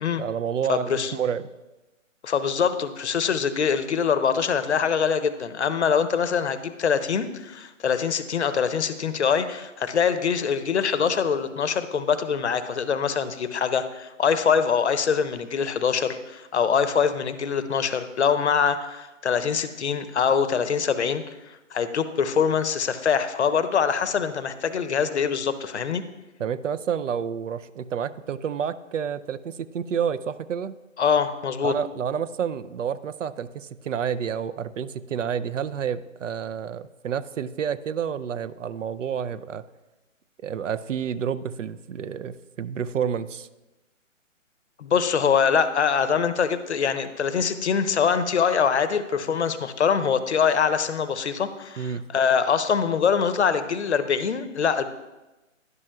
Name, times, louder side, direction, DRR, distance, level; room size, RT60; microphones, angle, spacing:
voice 1, 0.2-1.4 26.4-30.8 31.6-39.6 40.4-43.5 51.8-52.0, right 8 dB, 70° right, 14 dB, 0.5 m, -29 dB
voice 2, 0.7-1.1 2.2-21.2 21.7-26.0 31.0-31.7 44.8-54.9, left 6 dB, 60° left, 12 dB, 0.7 m, -24 dB
11.0 x 6.1 x 2.2 m, 1.0 s
hypercardioid pair, 155°, 39 cm